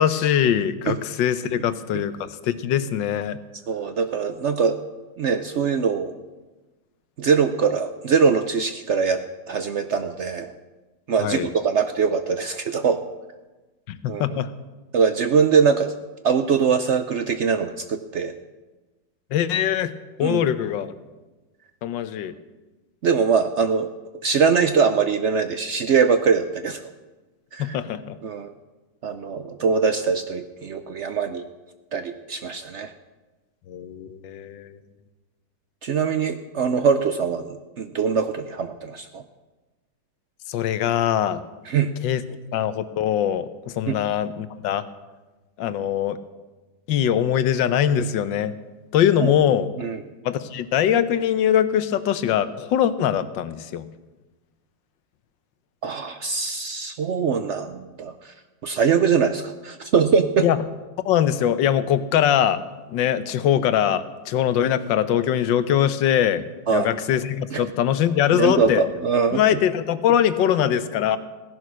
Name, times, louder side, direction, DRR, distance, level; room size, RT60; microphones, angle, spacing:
voice 1, 0.0-3.4 11.2-11.5 13.9-14.5 19.3-19.9 20.2-20.9 21.8-22.3 27.6-28.2 33.7-34.8 40.5-41.4 42.0-42.2 42.5-44.8 45.6-46.2 46.9-48.5 48.9-49.7 50.2-53.9 60.4-60.6 61.0-62.6 62.9-66.4 66.7-68.8 69.3-71.2, left 10 dB, 80° left, 13 dB, 1.5 m, -22 dB
voice 2, 3.7-4.8 5.2-6.1 7.2-9.2 9.5-10.5 11.1-13.0 14.1-14.2 14.9-16.0 16.2-18.3 20.2-20.4 23.0-23.9 24.2-26.8 27.5-27.8 28.2-28.5 29.0-31.4 31.9-32.9 35.8-39.2 41.7-41.9 43.9-44.0 49.2-49.3 49.8-50.0 55.8-58.3 58.6-60.5 66.7-66.9 67.5-67.6 68.3-69.4, right 6 dB, 80° right, 9 dB, 0.6 m, -22 dB
16.5 x 11.0 x 6.2 m, 1.2 s
omnidirectional pair, 2.0 m